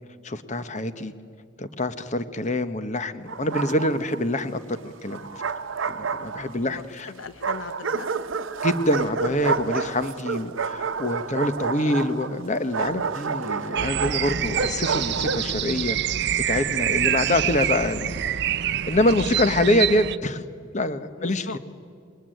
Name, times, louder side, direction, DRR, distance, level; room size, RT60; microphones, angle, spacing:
voice 1, 0.2-1.1 1.6-5.4 5.9-7.1 8.6-18.2 18.5-20.4 20.7-21.6, left 1 dB, 40° left, 11 dB, 1.2 m, -25 dB
Bark, 3.3-4.2 5.1-6.7 7.4-15.5, right 5 dB, 80° right, 0.9 m, -29 dB
voice 2, 6.4-8.1 11.2-11.3 17.0-17.2 21.2-21.6, left 4 dB, 70° left, 12 dB, 0.8 m, -39 dB
sound 1, 13.8-20.2, right 10 dB, 55° right, 0.6 m, -26 dB
27.0 x 21.5 x 9.2 m, 2.2 s
head